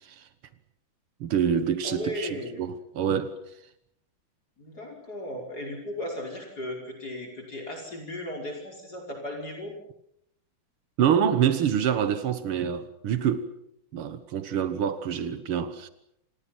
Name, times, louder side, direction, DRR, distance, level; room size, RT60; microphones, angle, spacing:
voice 1, 1.2-3.4 11.0-13.5 13.9-15.9, right 8 dB, 85° right, 2.1 m, -26 dB
voice 2, 1.8-2.6 4.6-9.7, left 1 dB, 45° left, 5.9 m, -36 dB
28.5 x 27.5 x 6.0 m
omnidirectional pair, 2.3 m